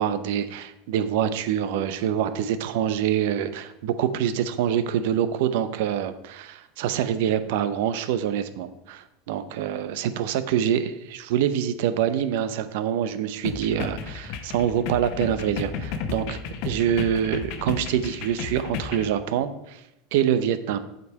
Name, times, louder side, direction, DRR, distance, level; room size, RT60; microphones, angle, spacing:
voice 1, 0.0-19.8 20.1-20.8, right 9 dB, 75° right, 12 dB, 0.7 m, -25 dB
sound 1, 13.4-19.1, left 6 dB, 60° left, 0.9 m, -33 dB
8.0 x 5.2 x 4.8 m, 0.87 s
supercardioid pair, 125°, 0 cm